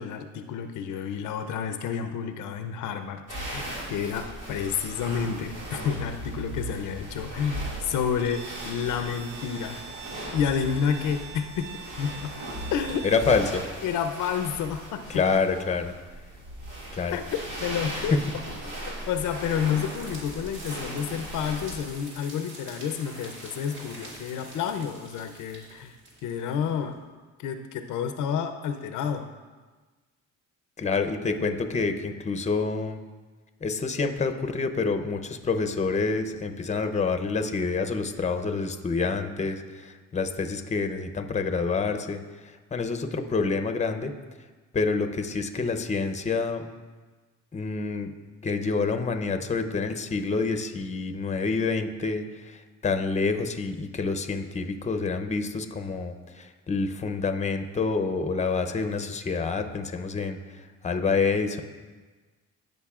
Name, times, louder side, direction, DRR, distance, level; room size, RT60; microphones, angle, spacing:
voice 1, 0.0-3.2 3.5-9.8 10.3-11.7 12.0-12.3 12.7-13.0 13.8-15.0 17.1-17.2 17.6-18.2 18.8-26.0 26.2-27.0 27.4-29.3, left 7 dB, 85° left, 8 dB, 0.6 m, -30 dB
sound 1, 3.3-21.8, right 1 dB, 85° right, 2.1 m, -38 dB
Bowed string instrument, 8.2-13.4, right 6 dB, 35° right, 0.6 m, -44 dB
voice 2, 13.0-13.7 15.1-15.9 16.9-17.2 17.9-18.2 30.8-33.0 33.6-44.1 44.7-46.6 47.5-48.1 48.4-61.6, left 4 dB, 25° left, 8 dB, 0.6 m, -27 dB
sound 2, 18.1-26.9, right 1 dB, 60° right, 2.5 m, -45 dB
15.0 x 5.3 x 2.4 m, 1.3 s
cardioid pair, 90°, 30 cm